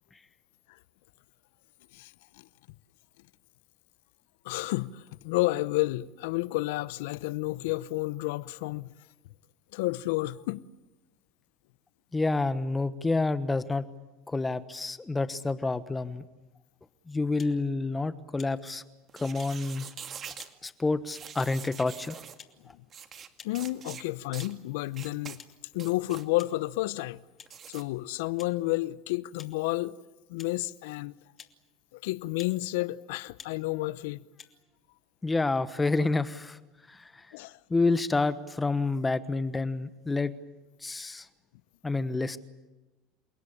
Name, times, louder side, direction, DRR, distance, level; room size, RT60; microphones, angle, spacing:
voice 1, 1.9-2.4 4.4-8.9 9.7-10.6 23.4-25.4 25.7-27.2 27.7-30.0 30.3-31.1 31.9-34.2 37.3-37.6, left 19 dB, 75° left, 0.8 m, -31 dB
voice 2, 12.1-13.9 14.3-16.2 17.1-18.8 19.1-19.9 20.6-22.2 35.2-36.6 36.9-37.3 37.7-40.3 40.8-41.3 41.8-42.4, left 3 dB, 15° left, 1.2 m, -28 dB
sound 1, 17.4-17.6 18.4-18.5 19.4-19.5 20.4-20.5 21.4-21.6 22.4-22.5 23.4-23.5 24.4-24.6 25.4-25.5 26.4-26.6 27.4-27.5 28.4-28.5 29.4-29.5 30.4-30.5 31.4-31.5 32.4-32.6 33.4-33.5 34.4-34.5, left 7 dB, 35° left, 2.7 m, -49 dB
sound 2, 19.1-20.5 21.1-22.4 22.9-23.3 23.5-24.0 24.3-24.5 24.9-25.4 25.7-26.3 27.5-27.8, right 8 dB, 40° right, 2.2 m, -44 dB
29.0 x 18.0 x 10.0 m
hypercardioid pair, 85°, 0 cm